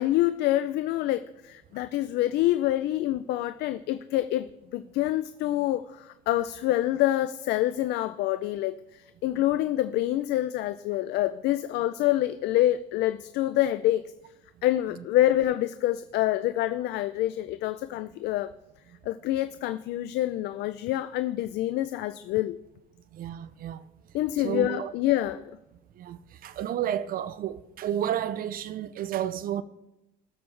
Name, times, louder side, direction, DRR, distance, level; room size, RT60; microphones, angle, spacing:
voice 1, 0.0-14.0 14.6-18.5 19.1-22.6 24.1-25.5, left 14 dB, 80° left, 0.4 m, -26 dB
voice 2, 23.1-23.8 24.4-24.9 26.0-29.6, right 10 dB, 60° right, 0.5 m, -31 dB
19.0 x 7.1 x 3.3 m
cardioid pair, 110°, 17 cm